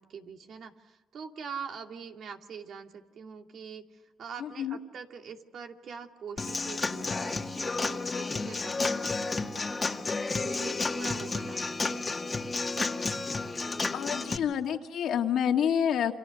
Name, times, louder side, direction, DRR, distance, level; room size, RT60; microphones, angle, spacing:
voice 1, 0.0-3.8 4.2-12.4, right 6 dB, 65° right, 4 dB, 2.5 m, -44 dB
voice 2, 4.4-4.8 13.5-13.6 13.9-16.1, left 8 dB, 70° left, 4 dB, 2.3 m, -28 dB
Human voice / Acoustic guitar / Drum, 6.4-14.4, left 3 dB, 25° left, 1.9 m, -31 dB
29.5 x 27.0 x 6.5 m, 1.1 s
cardioid pair, 90°, 0 cm